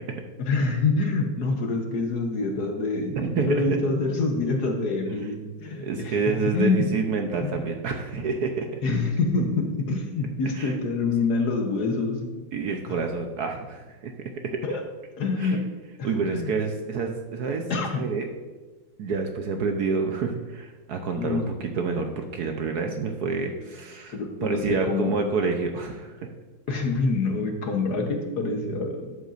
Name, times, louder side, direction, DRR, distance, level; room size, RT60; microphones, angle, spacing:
voice 1, 0.4-6.2 6.5-6.9 7.4-7.6 8.8-12.4 12.9-13.0 14.6-14.8 15.2-15.7 16.0-16.5 17.7-18.0 21.2-21.4 24.1-25.2 26.7-29.2, left 3 dB, 60° left, 3 dB, 1.4 m, -26 dB
voice 2, 3.2-3.8 5.8-8.8 10.6-10.7 12.5-14.1 15.4-15.6 16.0-17.6 18.0-18.3 19.0-24.1 24.4-26.3, right 4 dB, 65° right, 4 dB, 1.1 m, -28 dB
11.5 x 8.2 x 2.5 m, 1.3 s
omnidirectional pair, 2.1 m